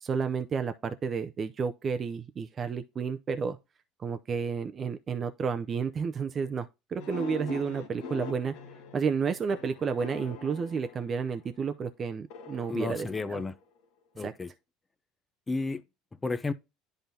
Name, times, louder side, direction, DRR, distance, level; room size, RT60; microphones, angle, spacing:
voice 1, 0.0-3.6 4.0-8.6 8.9-13.4 14.2-14.3, right 6 dB, 35° right, 0.5 m, -31 dB
sound 1, 7.0-11.5 12.3-13.8, left 4 dB, 75° left, 1.4 m, -43 dB
voice 2, 12.7-13.5 14.2-14.5 15.5-15.8 16.2-16.5, left 3 dB, 20° left, 0.6 m, -32 dB
10.5 x 3.8 x 2.7 m
supercardioid pair, 105°, 0 cm